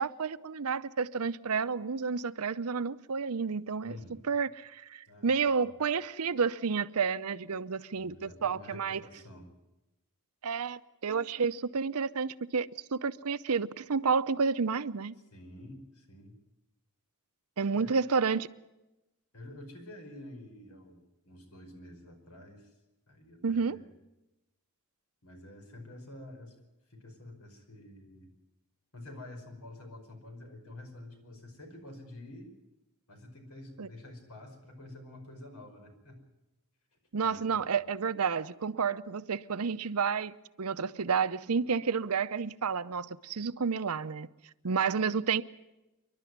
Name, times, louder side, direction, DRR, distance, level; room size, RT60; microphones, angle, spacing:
voice 1, 0.0-9.0 10.4-15.2 17.6-18.5 23.4-23.8 33.8-33.9 37.1-44.3 44.6-45.4, right 5 dB, 75° right, 0.7 m, -30 dB
voice 2, 3.8-4.2 5.1-5.7 7.9-9.5 15.3-16.4 17.7-17.9 19.3-22.8 23.1-23.9 25.2-26.5 26.9-28.3 28.9-32.5 33.1-36.2 37.2-37.7 44.6-44.8, left 1 dB, 80° left, 5.2 m, -49 dB
27.5 x 12.0 x 9.4 m
head